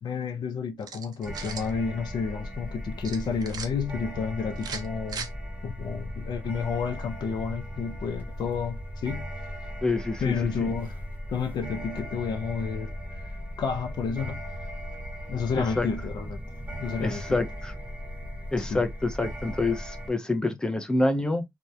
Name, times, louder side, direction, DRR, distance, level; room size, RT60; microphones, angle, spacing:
voice 1, 0.0-5.3 5.6-9.3 10.2-10.9 11.3-13.2 13.6-14.4 15.3-16.4 16.8-17.4 18.6-18.8, left 6 dB, 90° left, 0.5 m, -31 dB
sound 1, 0.8-1.7 3.0-3.7 4.6-5.3, right 6 dB, 65° right, 0.5 m, -38 dB
sound 2, 1.2-20.1, equal, 25° right, 0.7 m, -37 dB
voice 2, 9.8-10.7 15.5-15.9 17.0-17.7 18.5-21.4, left 2 dB, 10° left, 0.4 m, -27 dB
2.7 x 2.1 x 2.2 m
wide cardioid pair, 145°, 7 cm